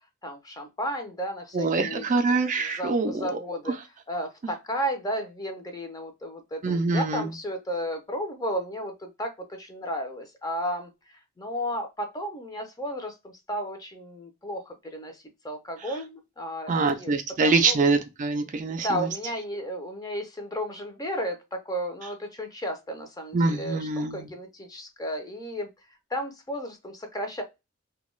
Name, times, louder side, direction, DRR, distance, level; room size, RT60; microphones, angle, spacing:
voice 1, 0.2-2.0 2.6-3.8 4.1-10.9 11.4-13.1 13.5-15.1 15.4-17.9 18.7-25.7 26.1-27.4, equal, 20° left, 0.5 m, -33 dB
voice 2, 1.5-3.2 6.6-7.3 16.7-19.1 23.3-24.3, right 3 dB, 40° right, 0.4 m, -24 dB
2.3 x 2.1 x 3.1 m
head